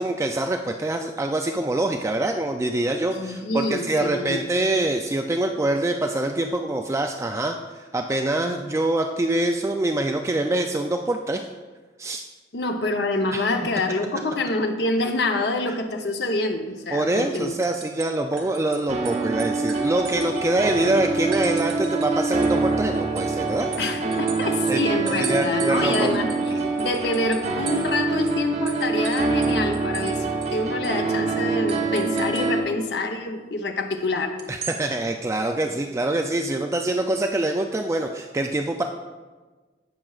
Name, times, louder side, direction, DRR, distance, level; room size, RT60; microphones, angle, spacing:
voice 1, 0.0-11.4 12.0-12.2 13.3-13.4 16.9-23.7 24.7-24.8 25.1-26.2 26.5-26.7 34.5-38.8, right 2 dB, 15° right, 4 dB, 0.3 m, -25 dB
voice 2, 3.2-4.4 12.5-17.5 23.8-30.2 30.5-34.4, left 2 dB, 70° left, 5 dB, 0.8 m, -26 dB
sound 1, 16.8-17.0 17.3-18.8 19.0-20.8 21.3-22.1 22.4-28.0 28.3-28.4 28.7-30.1 30.4-30.5 30.8-31.0 31.7-32.5 34.4-34.8, right 6 dB, 70° right, 1.5 m, -37 dB
sound 2, 18.9-32.6, right 3 dB, 40° right, 0.8 m, -25 dB
16.0 x 6.1 x 2.4 m, 1.3 s
head